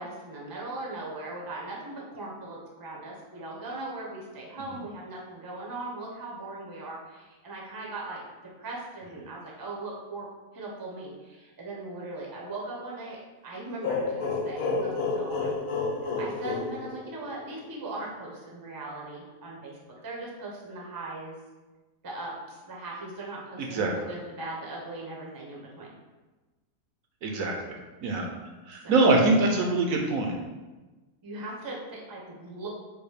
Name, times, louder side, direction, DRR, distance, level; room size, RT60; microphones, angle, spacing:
voice 1, 0.0-8.2 8.6-10.3 10.5-13.2 13.4-15.5 16.0-21.3 22.0-25.9 28.8-29.3 29.6-29.7 31.2-32.7, right 2 dB, 20° right, -3 dB, 0.5 m, -39 dB
sound 1, 13.8-17.5, left 3 dB, 75° left, 1.0 m, -30 dB
voice 2, 23.6-23.9 27.2-27.7 28.0-28.3 28.7-30.3, right 2 dB, 65° right, 1 dB, 0.9 m, -24 dB
4.9 x 2.3 x 4.8 m, 1.2 s
omnidirectional pair, 1.7 m